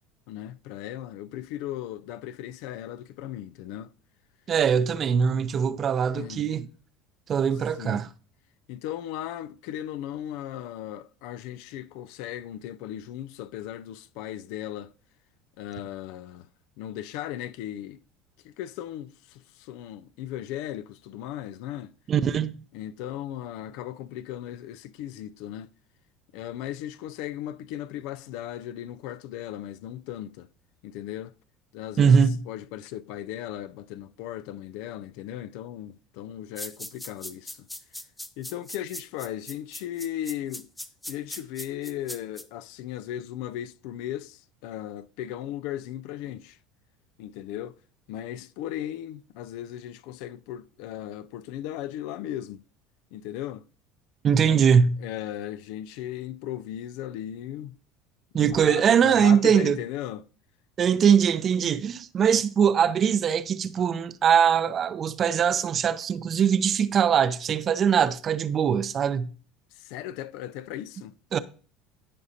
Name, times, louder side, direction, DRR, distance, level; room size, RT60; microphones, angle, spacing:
voice 1, 0.3-3.9 6.1-6.4 7.8-8.1 8.7-14.9 15.6-16.5 16.8-18.0 18.4-21.9 22.7-25.7 26.3-30.5 30.8-31.3 31.7-37.7 38.4-40.7 41.1-46.6 47.2-47.8 48.1-52.6 53.1-53.6 54.4-57.8 58.3-60.3 61.0-61.1 69.7-71.1, left 12 dB, 70° left, 0.4 m, -37 dB
voice 2, 4.5-6.7 7.3-8.1 22.1-22.6 32.0-32.4 54.2-55.0 58.3-59.8 60.8-69.3 71.3-71.4, right 7 dB, 40° right, 0.6 m, -22 dB
sound 1, 36.6-42.4, left 1 dB, 10° left, 0.8 m, -39 dB
14.5 x 5.0 x 2.7 m
hypercardioid pair, 80°, 0 cm